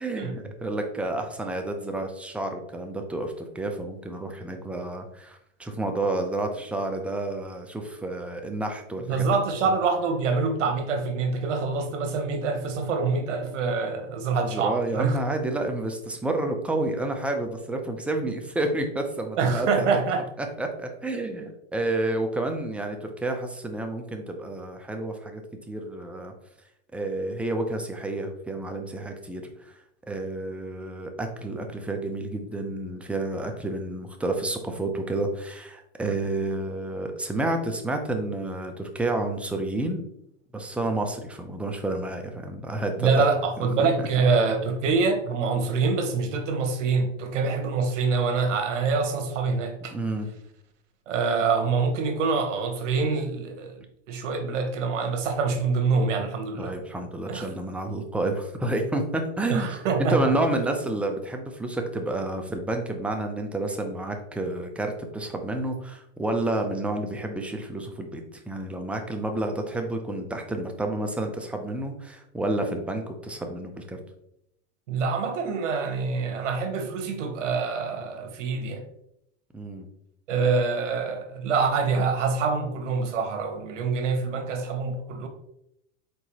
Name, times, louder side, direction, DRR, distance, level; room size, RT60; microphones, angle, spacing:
voice 1, 0.0-9.2 9.7-9.8 14.4-19.8 20.4-25.4 25.7-26.3 26.9-29.7 30.1-40.0 40.5-43.3 43.6-43.9 49.9-50.3 56.6-74.0 79.5-79.9, right 2 dB, 5° right, 0.5 m, -30 dB
voice 2, 9.1-15.2 19.4-20.3 43.0-49.9 51.1-53.7 54.1-56.8 57.3-57.5 59.5-60.4 74.9-78.9 80.3-85.3, right 4 dB, 80° right, 1.0 m, -25 dB
4.6 x 3.8 x 2.9 m
hypercardioid pair, 115°, 37 cm